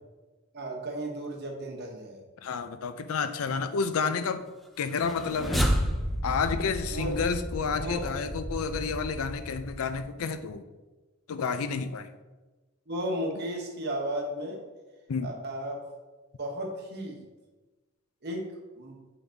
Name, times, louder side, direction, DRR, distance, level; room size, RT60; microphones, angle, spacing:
voice 1, 0.5-2.2 6.9-7.2 7.8-8.1 12.9-14.6 15.2-15.9 16.4-17.2 18.2-19.0, right 1 dB, 50° right, 0 dB, 1.1 m, -34 dB
voice 2, 2.4-4.4 4.8-5.7 6.2-10.6 11.3-12.1 15.1-15.3, left 5 dB, 80° left, 11 dB, 0.4 m, -30 dB
sound 1, 4.9-10.2, equal, ahead, 0.4 m, -32 dB
7.8 x 3.9 x 3.4 m, 1.2 s
head